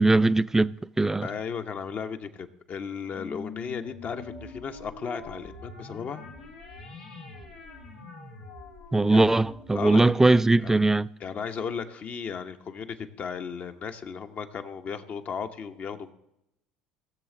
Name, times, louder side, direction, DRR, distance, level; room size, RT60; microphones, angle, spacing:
voice 1, 0.0-1.3 8.9-11.1, right 2 dB, 10° right, 0.3 m, -20 dB
voice 2, 1.2-6.2 9.1-9.3 9.7-10.1 10.6-10.8 11.2-16.1, left 6 dB, 45° left, 1.0 m, -35 dB
sound 1, 3.1-11.9, left 4 dB, 90° left, 2.3 m, -45 dB
18.0 x 7.2 x 3.9 m
hypercardioid pair, 70°, 4 cm